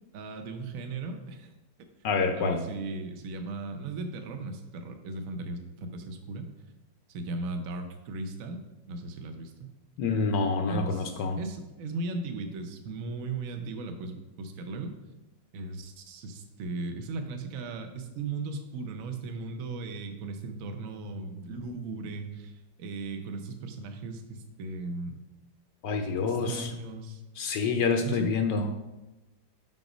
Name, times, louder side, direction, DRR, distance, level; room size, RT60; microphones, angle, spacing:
voice 1, 0.1-1.5 2.3-6.4 7.1-8.6 8.9-9.7 10.7-14.9 15.5-25.2 26.3-27.2 28.0-28.3, right 3 dB, 55° right, 6 dB, 1.0 m, -37 dB
voice 2, 2.0-2.6 10.0-11.4 25.8-26.7 27.4-28.6, left 4 dB, 70° left, 4 dB, 1.2 m, -27 dB
6.0 x 5.2 x 5.0 m, 1.0 s
omnidirectional pair, 2.0 m